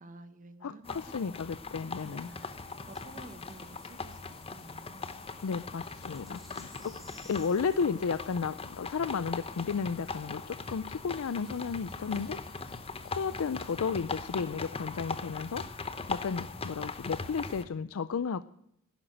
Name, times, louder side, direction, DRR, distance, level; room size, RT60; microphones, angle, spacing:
voice 1, 0.0-1.2 2.0-2.4 2.8-5.1 6.2-6.7, right 2 dB, 40° right, 9 dB, 1.1 m, -52 dB
voice 2, 0.6-2.3 5.4-6.9 7.3-12.4 13.2-15.6 16.1-18.4, left 5 dB, 70° left, 14 dB, 0.4 m, -33 dB
sound 1, 0.8-17.6, left 4 dB, 25° left, 0.9 m, -40 dB
sound 2, 2.0-13.8, equal, ahead, 3.3 m, -58 dB
11.5 x 10.0 x 9.0 m, 0.78 s
head